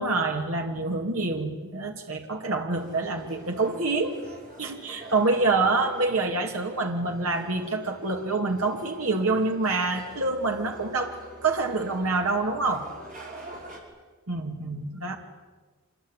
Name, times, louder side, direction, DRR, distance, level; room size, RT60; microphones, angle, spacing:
voice 1, 0.0-4.1 4.6-12.9 14.3-15.2, right 3 dB, 90° right, 3 dB, 2.5 m, -26 dB
sound 1, 2.7-13.8, right 1 dB, 40° right, 5.8 m, -46 dB
26.5 x 21.5 x 9.9 m, 1.3 s
head